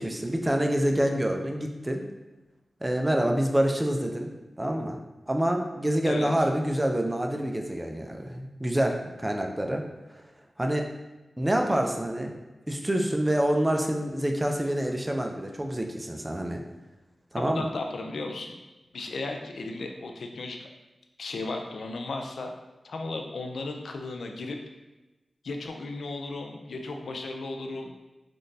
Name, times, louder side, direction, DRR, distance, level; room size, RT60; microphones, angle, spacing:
voice 1, 0.0-2.0 2.8-4.3 4.6-5.0 5.3-9.8 10.6-10.9 11.4-12.3 12.7-16.6 17.3-17.7, right 1 dB, 20° right, 3 dB, 0.4 m, -27 dB
voice 2, 17.5-18.5 18.9-20.7 21.2-22.5 22.8-24.6 25.4-27.9, left 3 dB, 85° left, 4 dB, 0.3 m, -35 dB
3.6 x 2.4 x 2.6 m, 1.1 s
cardioid pair, 45°, 0 cm